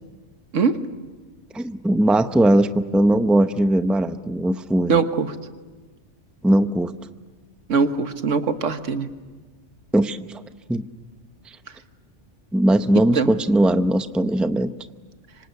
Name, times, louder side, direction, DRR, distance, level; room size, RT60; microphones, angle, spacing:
voice 1, 1.5-5.0 6.4-6.9 9.9-10.3 10.7-10.8 12.5-14.7, right 1 dB, ahead, 10 dB, 0.6 m, -19 dB
voice 2, 4.9-5.3 7.7-9.1 13.1-13.3, right 5 dB, 85° right, 9 dB, 1.6 m, -21 dB
25.5 x 25.5 x 8.2 m, 1.3 s
omnidirectional pair, 1.2 m